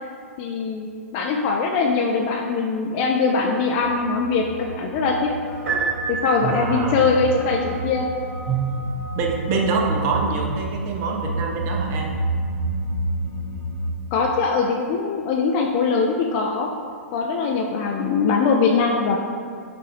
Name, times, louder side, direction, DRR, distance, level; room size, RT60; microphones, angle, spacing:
voice 1, 0.4-5.3 6.1-8.1 14.1-16.7 17.1-19.2, left 4 dB, 40° left, 0 dB, 0.3 m, -22 dB
sound 1, 3.8-13.9, right 2 dB, 85° right, 0.5 m, -30 dB
sound 2, 5.4-10.0, right 1 dB, ahead, 1.0 m, -40 dB
Piano, 5.7-6.9, right 5 dB, 60° right, 1.3 m, -27 dB
voice 2, 6.4-7.0 8.5-8.7 9.2-12.2, right 4 dB, 35° right, 1 dB, 0.6 m, -25 dB
5.5 x 2.5 x 3.3 m, 2.2 s
hypercardioid pair, 120°, 8 cm